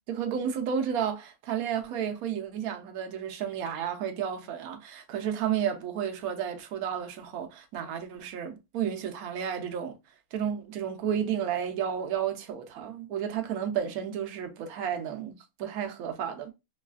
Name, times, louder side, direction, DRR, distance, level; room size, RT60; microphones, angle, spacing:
voice 1, 0.1-9.9 10.3-16.5, right 8 dB, 75° right, 0.8 m, -32 dB
3.1 x 2.3 x 2.3 m
omnidirectional pair, 2.0 m